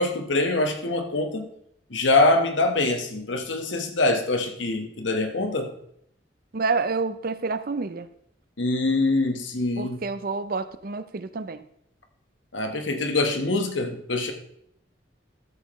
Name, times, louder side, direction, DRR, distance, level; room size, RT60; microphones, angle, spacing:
voice 1, 0.0-1.5 1.9-5.7 8.6-10.0 12.5-14.3, left 2 dB, 85° left, 5 dB, 1.4 m, -24 dB
voice 2, 6.5-8.1 9.8-11.6, right 4 dB, 50° right, 12 dB, 0.6 m, -28 dB
13.0 x 7.6 x 3.1 m, 0.70 s
head